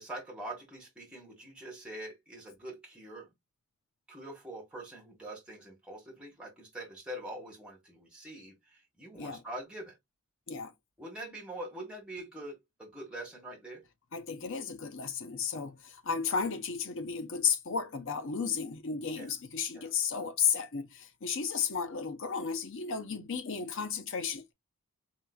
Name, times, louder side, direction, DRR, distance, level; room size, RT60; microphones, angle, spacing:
voice 1, 0.0-3.3 4.1-8.5 9.0-9.9 11.0-13.8 19.2-19.3 19.7-19.9, right 1 dB, 5° right, 1.9 m, -44 dB
voice 2, 14.1-24.5, left 6 dB, 60° left, 0.7 m, -33 dB
4.6 x 3.6 x 2.3 m
head